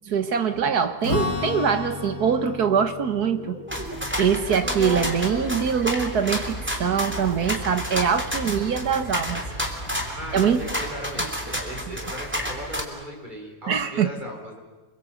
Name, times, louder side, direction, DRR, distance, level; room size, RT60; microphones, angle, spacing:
voice 1, 0.1-3.6 4.2-9.4 10.3-10.6 11.9-12.0 13.7-14.1, right 7 dB, 70° right, 1.9 m, -23 dB
Strum, 1.0-6.7, left 4 dB, 80° left, 4.2 m, -34 dB
sound 1, 2.6-11.9, left 1 dB, 25° left, 2.1 m, -41 dB
sound 2, 3.7-12.8, equal, 5° right, 3.2 m, -30 dB
voice 2, 10.1-14.6, equal, 25° right, 5.5 m, -37 dB
28.5 x 22.0 x 8.0 m
omnidirectional pair, 1.7 m